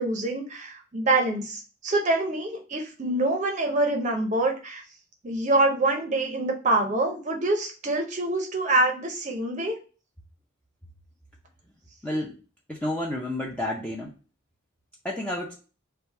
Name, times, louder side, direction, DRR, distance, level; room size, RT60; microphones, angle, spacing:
voice 1, 0.0-4.8 5.2-9.8, right 2 dB, 35° right, 3 dB, 0.6 m, -25 dB
voice 2, 12.0-12.3 12.7-14.1 15.0-15.5, left 1 dB, 5° left, -3 dB, 0.5 m, -30 dB
3.3 x 2.5 x 4.5 m, 0.35 s
head